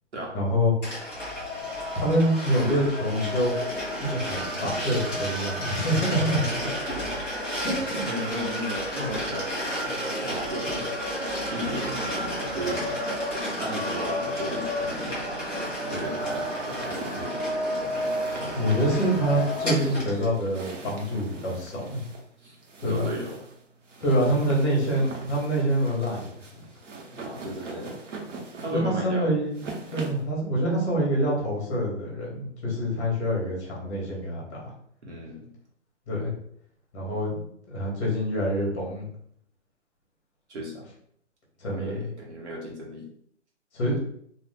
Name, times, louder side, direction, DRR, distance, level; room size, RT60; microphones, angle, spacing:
voice 1, 0.3-0.7 1.9-3.5 4.0-6.4 7.5-8.0 18.5-22.0 22.8-23.1 24.0-26.2 28.7-29.6 29.9-34.6 36.1-36.3 36.9-39.1 41.6-42.0 43.7-44.0, equal, 25° left, -3 dB, 1.0 m, -26 dB
sound 1, 0.8-20.3, equal, ahead, 0.5 m, -31 dB
voice 2, 6.4-7.5 7.9-10.9 11.5-12.1 12.5-13.0 13.6-15.1 15.8-17.4 22.4-22.6 22.8-23.4 27.0-28.0 28.6-29.3 35.0-35.6 40.5-40.8 41.7-43.1, right 1 dB, 65° right, -2 dB, 1.1 m, -35 dB
sound 2, 16.0-30.3, right 3 dB, 90° right, 1.0 m, -42 dB
2.4 x 2.4 x 3.3 m, 0.66 s
hypercardioid pair, 160°, 36 cm